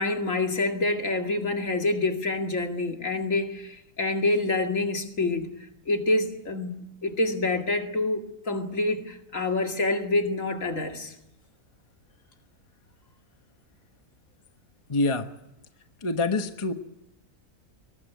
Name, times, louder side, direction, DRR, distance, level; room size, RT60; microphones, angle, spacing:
voice 1, 0.0-5.5 5.9-6.8 7.0-11.1, left 2 dB, 60° left, 2.6 m, -27 dB
voice 2, 14.9-15.3 16.0-16.7, left 2 dB, 20° left, 1.1 m, -25 dB
22.5 x 19.0 x 9.3 m
omnidirectional pair, 1.6 m